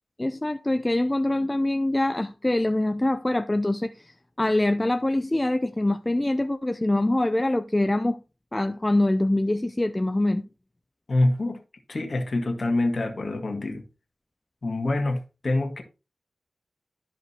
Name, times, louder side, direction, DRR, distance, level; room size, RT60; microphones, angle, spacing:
voice 1, 0.2-3.9 4.4-8.2 8.5-10.5, left 1 dB, 20° left, 0.5 m, -24 dB
voice 2, 11.1-11.6 11.9-13.8 14.6-15.8, left 2 dB, 60° left, 1.7 m, -25 dB
12.5 x 5.1 x 2.8 m
wide cardioid pair, 65°, 0 cm